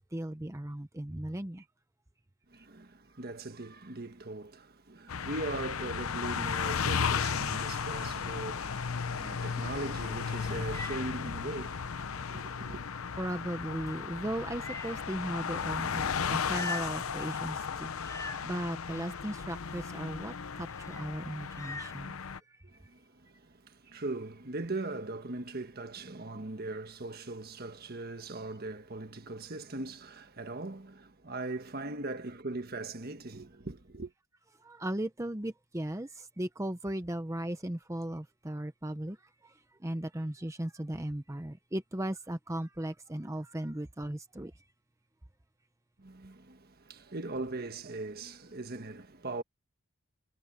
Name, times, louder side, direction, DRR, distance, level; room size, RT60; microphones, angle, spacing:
voice 1, 0.0-1.7 2.5-2.7 13.2-22.2 22.5-22.6 34.6-39.2 39.4-44.5, right 1 dB, 15° right, 0.8 m, -37 dB
voice 2, 2.5-12.9 22.6-34.1 46.0-49.4, right 2 dB, 45° right, 1.5 m, -40 dB
sound 1, 5.1-22.4, left 6 dB, 90° left, 0.8 m, -35 dB
Meow, 10.0-22.0, left 3 dB, 15° left, 4.6 m, -47 dB
head